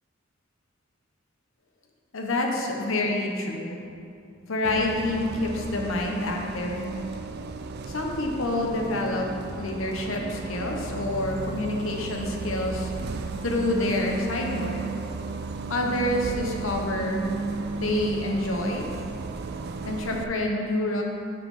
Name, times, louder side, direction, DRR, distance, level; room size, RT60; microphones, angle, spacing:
voice 1, 2.1-3.8 4.5-6.7 7.9-9.3 9.5-12.9 13.4-14.8 15.7-17.2 17.7-18.9 19.8-21.0, left 1 dB, 65° left, 1 dB, 0.9 m, -27 dB
Bus, 4.6-20.2, right 4 dB, 50° right, 0.3 m, -34 dB
5.6 x 5.5 x 5.6 m, 2.6 s
head